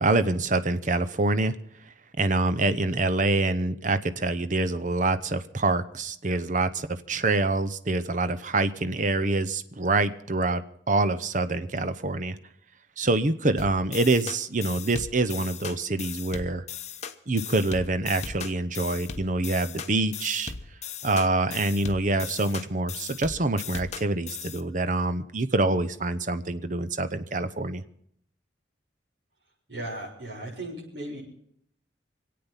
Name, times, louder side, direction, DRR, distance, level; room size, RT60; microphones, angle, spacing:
voice 1, 0.0-1.5 2.2-12.4 13.0-16.6 17.3-20.5 21.0-27.8, right 2 dB, 45° right, 12 dB, 0.8 m, -26 dB
sound 1, 13.6-24.6, left 6 dB, 40° left, 0.8 m, -38 dB
voice 2, 29.7-31.2, right 1 dB, 75° right, -4 dB, 6.8 m, -36 dB
25.5 x 8.7 x 5.7 m, 0.68 s
head